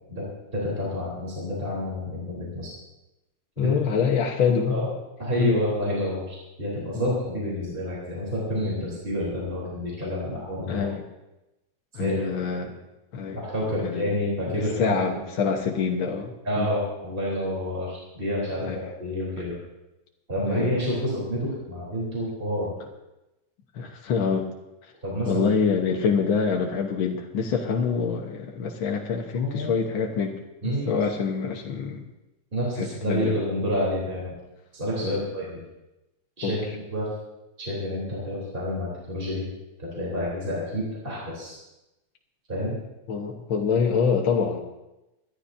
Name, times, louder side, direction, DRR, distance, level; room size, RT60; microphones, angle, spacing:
voice 1, 0.5-2.7 3.6-3.8 4.7-4.9 5.2-10.9 11.9-12.1 12.6-12.7 13.3-15.2 16.5-19.6 20.3-22.7 25.0-25.4 29.4-29.7 30.6-30.9 32.5-34.3 34.7-35.6 36.4-37.1 37.6-39.4 39.8-41.5 42.5-42.8, equal, 25° right, -6 dB, 3.8 m, -29 dB
voice 2, 3.6-4.9 5.4-5.5 6.9-7.0 10.7-11.0 11.9-12.7 13.1-13.4 13.8-14.1 14.5-16.3 16.6-16.7 18.7-18.8 20.4-20.7 23.8-24.5 25.3-32.0 32.8-33.4 35.0-35.2 36.4-36.6 43.1-44.6, left 6 dB, 70° left, 1 dB, 1.9 m, -25 dB
26.0 x 12.0 x 2.7 m, 0.97 s
omnidirectional pair, 2.3 m